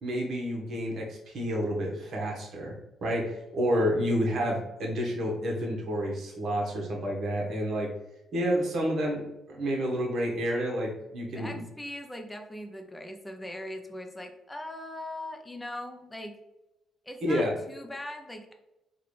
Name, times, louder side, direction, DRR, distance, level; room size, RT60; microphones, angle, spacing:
voice 1, 0.0-2.7 3.0-7.9 8.3-11.6 17.2-17.6, equal, 65° right, -1 dB, 1.1 m, -29 dB
voice 2, 11.3-16.4 17.1-18.5, left 1 dB, 10° left, 4 dB, 0.5 m, -40 dB
3.8 x 2.4 x 3.2 m, 0.97 s
cardioid pair, 90°, 0 cm